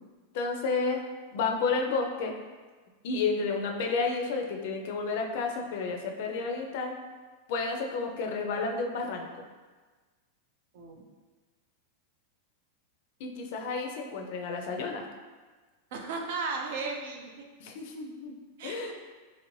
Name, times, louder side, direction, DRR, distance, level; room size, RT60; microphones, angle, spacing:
voice 1, 0.3-1.0 1.3-2.3 3.0-6.9 7.5-9.4 13.2-15.1 17.6-18.3 18.6-18.9, left 4 dB, 55° left, 3 dB, 0.4 m, -31 dB
voice 2, 15.9-17.5 18.6-18.9, right 4 dB, 60° right, 2 dB, 0.5 m, -35 dB
2.9 x 2.5 x 3.1 m, 1.4 s
supercardioid pair, 155°, 0 cm